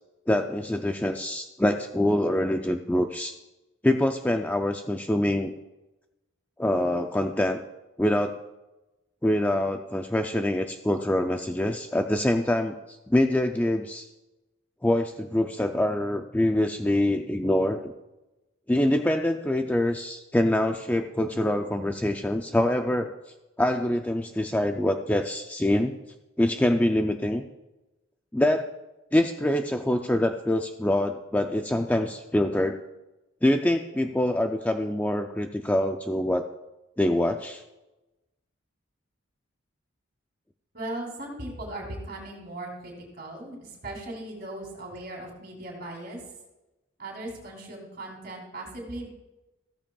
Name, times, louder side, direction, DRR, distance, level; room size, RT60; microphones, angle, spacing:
voice 1, 0.3-3.4 3.8-5.5 6.6-7.6 8.0-8.4 9.2-12.8 13.1-14.1 14.8-17.9 18.7-23.1 23.6-25.9 26.4-27.4 28.3-28.7 29.1-32.8 33.4-36.5 37.0-37.6, left 1 dB, 10° left, 5 dB, 0.3 m, -25 dB
voice 2, 40.7-43.6 43.8-46.2 47.0-49.1, right 1 dB, 45° right, 0 dB, 3.1 m, -38 dB
15.0 x 14.0 x 2.3 m, 1.0 s
head